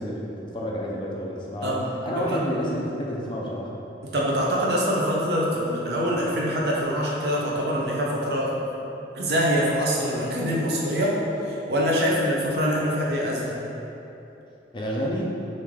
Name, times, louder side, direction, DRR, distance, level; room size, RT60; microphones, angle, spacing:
voice 1, 0.0-1.8 2.0-3.7 14.7-15.4, equal, 25° left, -3 dB, 0.4 m, -29 dB
voice 2, 1.6-2.4 4.0-8.5 9.1-11.1 11.4-13.6, equal, 70° right, -4 dB, 0.6 m, -24 dB
3.1 x 2.6 x 3.5 m, 2.9 s
head